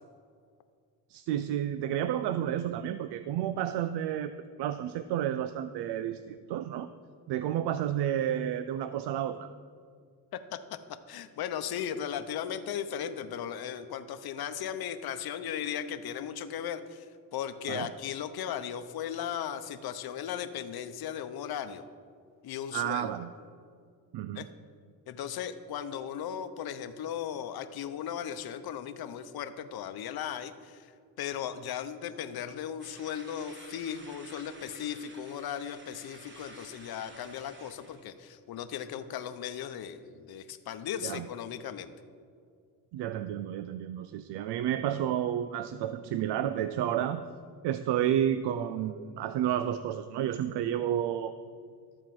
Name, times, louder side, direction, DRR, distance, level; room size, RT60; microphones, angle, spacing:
voice 1, 1.1-4.3 4.6-6.9 7.3-9.5 17.7-17.9 22.7-23.3 24.1-24.5 41.0-41.3 42.9-47.2 47.6-51.3, right 10 dB, 85° right, 12 dB, 0.5 m, -31 dB
voice 2, 10.3-10.8 11.1-21.8 22.4-23.1 24.3-24.5 25.1-41.9, left 9 dB, 65° left, 10 dB, 0.8 m, -37 dB
sound 1, 32.8-38.1, right 2 dB, 30° right, 1.5 m, -52 dB
13.5 x 4.5 x 7.5 m, 2.2 s
cardioid pair, 115°, 40 cm